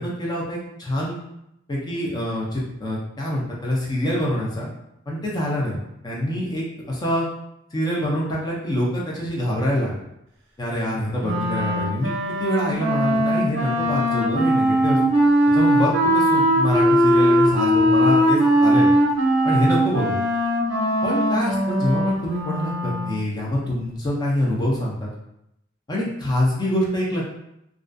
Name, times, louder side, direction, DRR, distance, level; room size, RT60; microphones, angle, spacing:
voice 1, 0.0-1.2 1.7-4.7 5.1-5.8 6.0-7.3 7.7-10.0 10.6-15.0 15.5-18.9 19.4-20.2 21.0-25.1 25.9-27.2, equal, 20° left, -4 dB, 0.4 m, -25 dB
Wind instrument woodwind instrument, 11.2-23.3, equal, 75° right, 0.5 m, -20 dB
2.4 x 2.2 x 2.4 m, 0.81 s
head